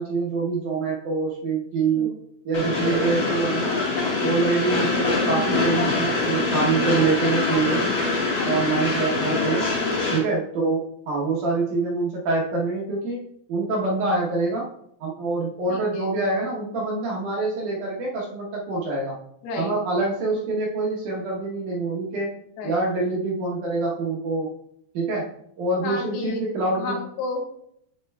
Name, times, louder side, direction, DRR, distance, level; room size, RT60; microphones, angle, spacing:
voice 1, 0.0-2.1 2.5-3.8 4.2-7.9 8.4-9.7 10.1-14.7 15.0-19.2 19.6-22.3 22.6-24.5 24.9-25.3 25.6-27.0, right 3 dB, 70° right, -4 dB, 2.0 m, -25 dB
Train, 2.5-10.2, left 3 dB, 55° left, 1.3 m, -24 dB
voice 2, 6.8-7.8 8.3-8.7 9.7-10.2 15.7-16.1 19.4-19.8 22.6-22.8 25.8-27.4, left 3 dB, 85° left, 2 dB, 3.0 m, -33 dB
8.5 x 6.6 x 2.2 m, 0.72 s
omnidirectional pair, 4.6 m